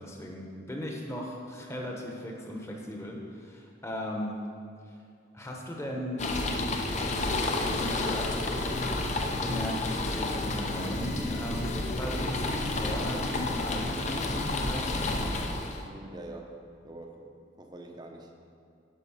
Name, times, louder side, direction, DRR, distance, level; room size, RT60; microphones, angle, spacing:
voice 1, 0.0-4.4 4.9-5.0 5.3-6.3 7.4-15.1, equal, 15° left, -1 dB, 1.1 m, -37 dB
sound 1, 6.2-15.8, left 2 dB, 40° left, 0.7 m, -30 dB
voice 2, 15.8-16.6 16.8-17.3 17.6-18.3, right 2 dB, 20° right, 2 dB, 0.8 m, -44 dB
10.5 x 5.5 x 5.6 m, 2.4 s
head